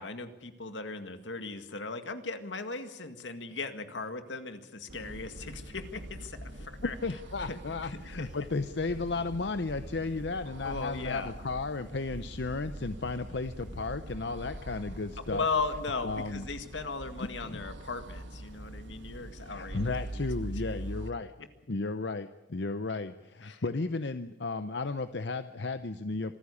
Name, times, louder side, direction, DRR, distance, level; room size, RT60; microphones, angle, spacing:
voice 1, 0.0-6.9 7.5-7.6 7.8-8.3 10.6-11.3 15.3-20.3 23.4-23.7, left 3 dB, 90° left, 8 dB, 2.0 m, -37 dB
sound 1, 4.9-21.1, right 1 dB, 90° right, 1.7 m, -43 dB
voice 2, 6.8-15.4 16.0-16.4 17.2-17.6 19.4-21.3 21.7-26.4, left 3 dB, 70° left, 11 dB, 0.7 m, -34 dB
26.0 x 14.5 x 8.5 m, 1.0 s
head